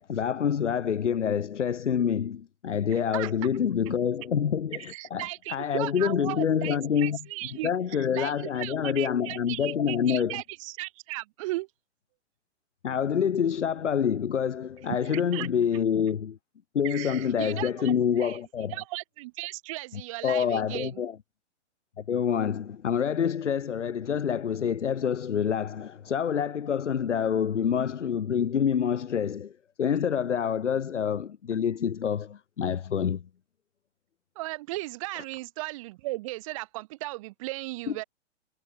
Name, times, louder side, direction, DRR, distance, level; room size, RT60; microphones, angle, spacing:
voice 1, 0.0-7.2 7.6-10.4 12.8-16.4 16.7-18.7 19.9-21.2 22.0-29.5 29.8-33.2 35.2-35.3 37.9-38.0, left 8 dB, 90° left, 3.9 m, -27 dB
voice 2, 2.9-3.3 4.9-11.7 15.0-15.5 16.8-18.4 18.7-21.0 34.4-38.0, right 20 dB, 30° right, 4.1 m, -36 dB
hypercardioid pair, 175°, 35 cm